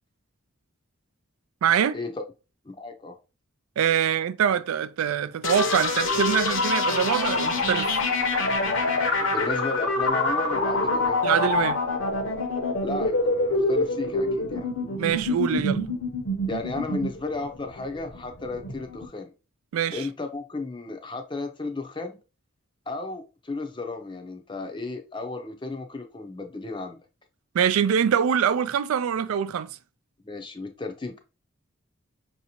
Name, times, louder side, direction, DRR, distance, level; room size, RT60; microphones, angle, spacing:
voice 1, 1.6-2.0 3.8-8.0 11.2-11.8 15.0-15.8 19.7-20.1 27.5-29.7, right 8 dB, 80° right, 0.4 m, -24 dB
voice 2, 2.6-3.2 9.2-11.3 12.8-14.7 16.5-19.3 19.9-22.2 22.9-27.0 30.2-31.2, left 3 dB, 20° left, 0.5 m, -34 dB
sound 1, 5.4-19.0, left 2 dB, 65° left, 0.9 m, -26 dB
5.6 x 2.7 x 2.8 m
head